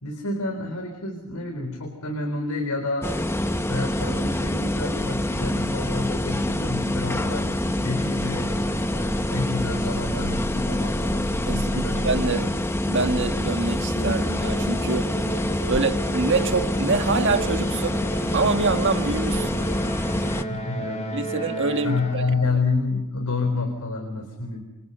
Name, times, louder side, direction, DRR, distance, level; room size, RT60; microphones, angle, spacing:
voice 1, 0.0-3.1 3.7-12.0 12.3-12.5 20.4-21.1 21.8-24.6, left 3 dB, 80° left, 4.2 m, -29 dB
sound 1, 3.0-20.4, left 1 dB, 10° left, 1.1 m, -26 dB
voice 2, 11.4-12.5 12.9-15.2 15.7-18.0 18.3-19.6 21.1-22.2, right 3 dB, 55° right, 1.6 m, -25 dB
Musical instrument, 13.9-22.4, right 1 dB, 30° left, 6.3 m, -33 dB
28.5 x 27.5 x 5.5 m
head